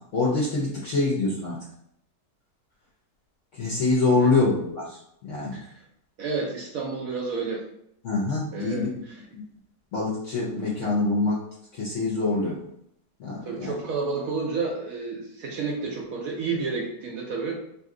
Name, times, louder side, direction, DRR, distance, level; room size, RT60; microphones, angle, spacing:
voice 1, 0.1-1.6 3.5-5.6 8.0-8.9 9.3-9.4 9.9-11.4 11.7-12.6 13.2-13.7, left 3 dB, 65° left, -5 dB, 0.7 m, -25 dB
voice 2, 5.5-5.8 6.2-7.6 8.5-9.2 13.5-17.6, right 4 dB, 70° right, -2 dB, 0.8 m, -30 dB
2.6 x 2.5 x 3.6 m, 0.75 s
omnidirectional pair, 1.9 m